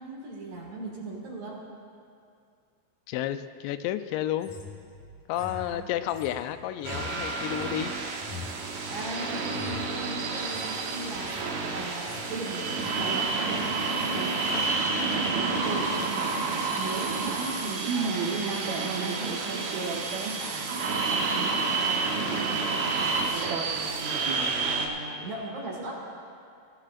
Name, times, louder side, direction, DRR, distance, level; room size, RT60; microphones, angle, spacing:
voice 1, 0.0-1.6 5.3-5.9 8.9-13.6 14.0-16.5 16.7-17.5 17.9-19.9 20.3-23.1 23.5-24.2 24.6-26.0, right 2 dB, 50° right, -3 dB, 2.6 m, -39 dB
voice 2, 3.1-4.5 5.3-7.9 14.5-14.7, left 12 dB, 90° left, 11 dB, 2.8 m, -31 dB
sound 1, 4.4-9.1 9.5-9.9 10.4-10.7 11.0-11.5 11.8-12.4 12.6-13.0 13.5-13.7, left 5 dB, 70° left, 1.7 m, -44 dB
sound 2, 6.8-24.9, right 4 dB, 75° right, 1.6 m, -29 dB
22.0 x 16.0 x 2.5 m, 2.3 s
omnidirectional pair, 4.9 m